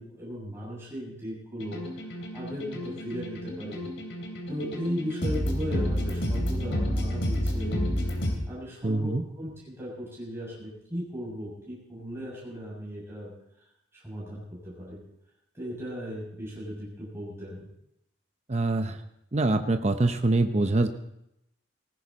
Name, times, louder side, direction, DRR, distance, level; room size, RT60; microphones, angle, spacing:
voice 1, 0.0-3.8 4.5-13.3 13.9-15.0 15.5-17.7, equal, 15° right, -6 dB, 6.6 m, -37 dB
sound 1, 1.6-8.4, equal, 80° left, 3.3 m, -30 dB
voice 2, 8.8-9.2 18.5-19.0 19.3-20.9, right 2 dB, 35° right, 7 dB, 0.8 m, -24 dB
18.5 x 15.5 x 4.2 m, 0.80 s
head